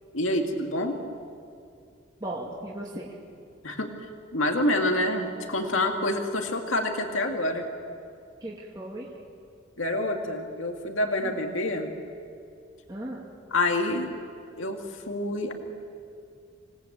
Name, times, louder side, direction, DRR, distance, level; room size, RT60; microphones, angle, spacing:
voice 1, 0.1-1.0 3.6-3.9 4.3-7.6 9.8-11.9 13.5-14.1 14.6-15.5, left 1 dB, 85° left, 3 dB, 2.2 m, -27 dB
voice 2, 2.2-3.1 8.4-9.1 11.2-11.4 12.9-13.3, right 1 dB, 20° right, -4 dB, 2.3 m, -36 dB
27.0 x 19.0 x 8.6 m, 2.4 s
head